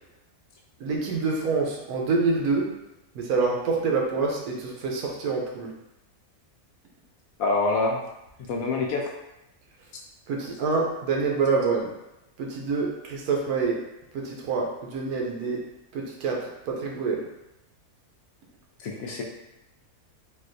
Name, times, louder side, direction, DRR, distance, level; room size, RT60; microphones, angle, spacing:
voice 1, 0.8-2.7 3.2-5.7 10.3-11.9 12.4-13.8 14.1-15.6 15.9-17.2, right 4 dB, 80° right, -1 dB, 1.1 m, -26 dB
voice 2, 7.4-8.0 8.5-9.1 18.8-19.2, left 3 dB, 70° left, 0 dB, 0.9 m, -25 dB
3.9 x 2.3 x 2.5 m, 0.90 s
omnidirectional pair, 1.6 m